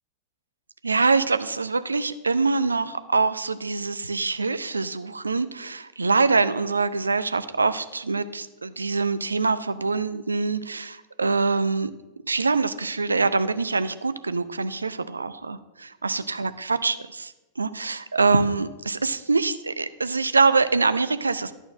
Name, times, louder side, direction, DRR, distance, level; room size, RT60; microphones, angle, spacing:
voice 1, 0.8-11.9 12.2-21.5, right 4 dB, 80° right, 13 dB, 0.5 m, -24 dB
11.5 x 4.4 x 6.1 m, 1.1 s
figure-of-eight pair, 90°, 0 cm